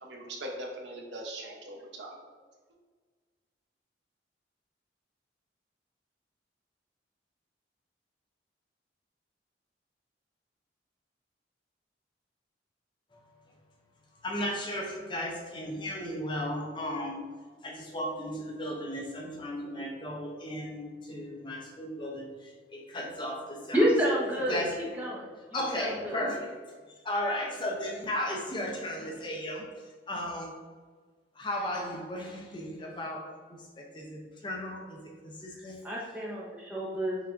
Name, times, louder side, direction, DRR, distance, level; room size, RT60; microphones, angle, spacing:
voice 1, 0.0-2.2, right 1 dB, 70° right, 0 dB, 0.8 m, -41 dB
voice 2, 14.2-17.3 17.6-24.2 24.5-24.8 25.5-26.5 26.9-29.7 30.1-30.6 31.4-35.8, left 1 dB, 25° left, 0 dB, 0.5 m, -35 dB
voice 3, 23.7-24.6 25.0-25.3 25.7-26.2 35.8-37.2, equal, 10° right, -5 dB, 0.9 m, -28 dB
5.7 x 3.4 x 2.5 m, 1.5 s
head